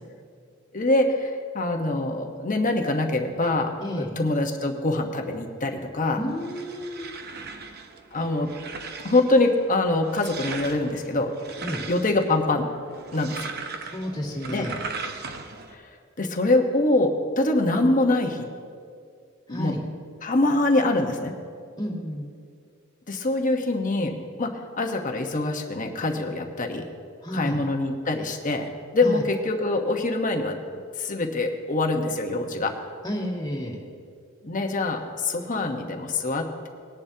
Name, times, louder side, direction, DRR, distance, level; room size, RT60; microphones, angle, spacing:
voice 1, 0.7-3.7 4.2-6.2 8.1-8.5 9.0-11.3 11.9-12.7 13.1-13.4 14.5-14.7 16.2-18.5 19.5-19.7 20.2-21.3 23.1-24.1 24.4-24.5 24.8-26.8 27.3-30.6 31.0-32.7 34.4-36.7, left 2 dB, 40° left, 3 dB, 1.1 m, -24 dB
voice 2, 6.1-7.1 11.6-11.8 13.8-14.8 19.5-19.8 21.8-22.2 27.2-27.6 29.0-29.2 33.0-33.8, equal, 20° left, -2 dB, 2.1 m, -31 dB
sound 1, 6.1-15.7, right 4 dB, 50° right, 0.8 m, -39 dB
20.0 x 10.5 x 2.8 m, 2.2 s
head